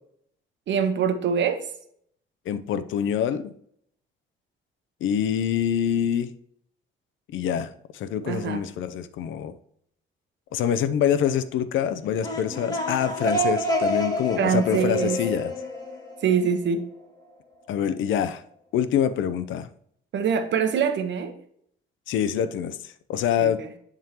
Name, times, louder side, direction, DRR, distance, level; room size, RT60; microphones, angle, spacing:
voice 1, 0.7-1.7 8.2-8.6 14.4-15.2 16.2-16.9 20.1-21.4 23.4-23.7, right 7 dB, 65° right, 7 dB, 1.0 m, -24 dB
voice 2, 2.5-3.5 5.0-6.3 7.3-7.7 7.9-9.5 10.5-15.5 17.7-18.4 18.7-19.7 22.1-22.7 23.1-23.6, left 9 dB, 80° left, 12 dB, 0.6 m, -25 dB
sound 1, 12.0-16.7, equal, 20° left, 1.7 m, -28 dB
10.5 x 3.7 x 2.9 m, 0.67 s
cardioid pair, 90°, 20 cm